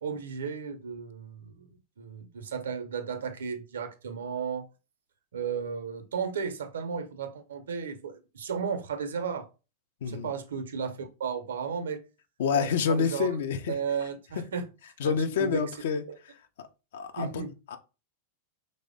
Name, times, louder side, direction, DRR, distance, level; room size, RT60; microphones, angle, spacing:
voice 1, 0.0-1.7 2.0-4.7 5.3-9.5 10.1-12.0 12.5-13.3 13.7-14.7 15.0-15.6 16.1-16.2 17.2-17.5, right 6 dB, 65° right, 0.6 m, -34 dB
voice 2, 10.0-10.3 12.4-13.8 14.4-14.5 15.0-16.0 16.9-17.4 17.7-17.8, left 6 dB, 60° left, 0.4 m, -27 dB
3.1 x 2.0 x 3.7 m
figure-of-eight pair, 90°, 0 cm